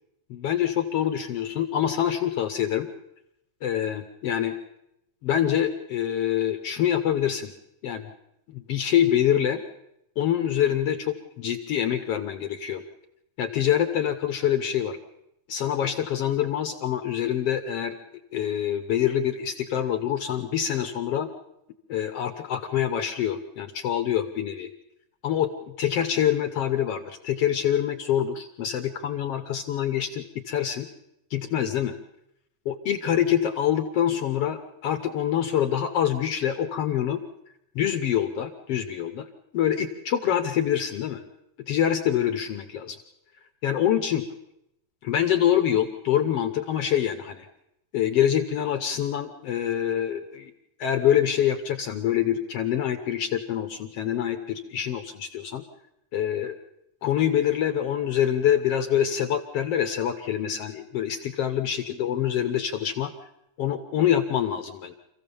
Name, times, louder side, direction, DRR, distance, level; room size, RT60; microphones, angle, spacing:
voice 1, 0.3-2.9 3.6-4.5 5.2-7.5 7.8-8.1 8.5-9.6 10.2-12.8 13.4-15.0 15.5-18.0 18.3-21.3 21.9-24.7 25.2-30.9 31.3-32.0 32.7-37.2 37.8-39.3 39.5-41.2 41.7-43.0 43.6-44.2 45.0-47.5 47.9-50.5 50.8-55.6 56.1-56.5 57.0-63.1 63.6-64.9, left 10 dB, 60° left, 8 dB, 1.7 m, -25 dB
26.5 x 15.5 x 7.1 m, 0.81 s
omnidirectional pair, 3.6 m